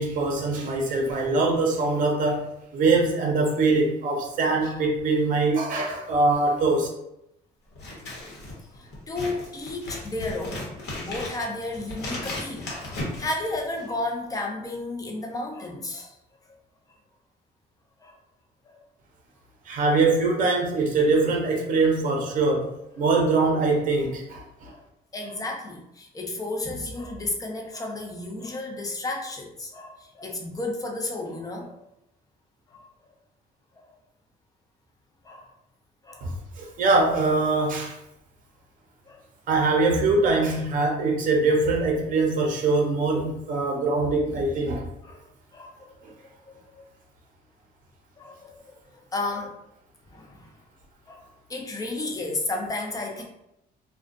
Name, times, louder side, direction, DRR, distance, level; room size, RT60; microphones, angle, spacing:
voice 1, 0.0-6.9 19.7-22.7 23.0-24.7 36.2-37.9 39.5-44.8, right 3 dB, 50° right, 0 dB, 0.6 m, -23 dB
Scissors, 7.7-14.0, left 1 dB, 70° left, 0.9 m, -36 dB
voice 2, 8.7-10.7 11.0-16.2 18.0-18.2 18.7-18.8 24.7-24.8 25.1-31.8 32.7-32.8 33.8-33.9 35.2-35.5 36.0-36.3 39.1-39.2 45.0-45.2 45.5-45.9 46.5-46.8 48.2-48.6 48.9-49.6 50.1-50.5 51.1-53.2, left 2 dB, 20° left, 1 dB, 0.5 m, -33 dB
2.4 x 2.2 x 2.4 m, 0.82 s
cardioid pair, 110°, 17 cm